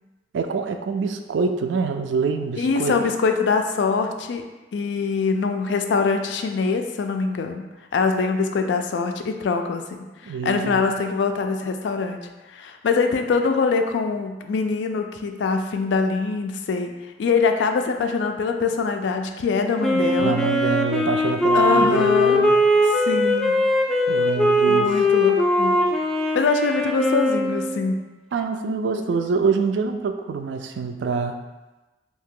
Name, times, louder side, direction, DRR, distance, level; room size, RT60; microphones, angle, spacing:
voice 1, 0.3-2.9 10.3-10.8 20.2-22.6 24.1-24.9 28.3-31.4, right 5 dB, 80° right, 6 dB, 0.3 m, -25 dB
voice 2, 2.6-4.4 4.7-7.7 7.9-12.2 12.5-16.9 17.2-20.4 21.5-22.4 22.8-23.5 24.7-25.9 26.3-28.0 29.1-29.2, left 4 dB, 80° left, 6 dB, 0.3 m, -23 dB
Wind instrument woodwind instrument, 19.8-27.9, left 1 dB, ahead, 0.3 m, -20 dB
2.8 x 2.7 x 3.6 m, 1.1 s
head